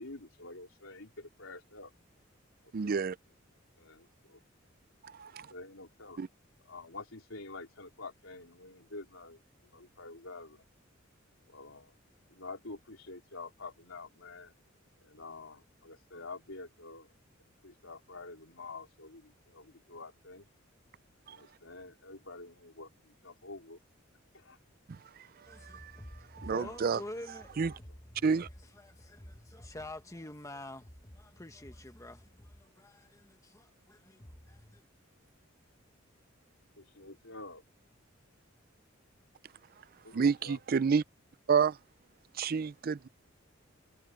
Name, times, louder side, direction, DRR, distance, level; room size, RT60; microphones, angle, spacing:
voice 1, 0.0-1.9 2.8-3.1 3.8-4.4 5.5-6.2 6.7-10.6 11.5-11.9 12.3-14.5 15.0-17.1 17.6-20.5 21.3-23.8 24.3-24.6 26.6-27.0 36.8-37.6 40.0-40.6, left 3 dB, 85° left, 4.1 m, -48 dB
voice 2, 2.7-3.2 5.0-5.5 6.2-6.3 21.3-21.4 25.6-25.9 26.3-27.0 27.6-27.7 28.2-28.5 40.1-41.0 41.5-41.8 42.3-43.1, right 5 dB, 45° right, 0.4 m, -29 dB
voice 3, 25.5-34.8, left 1 dB, 15° left, 1.4 m, -47 dB
head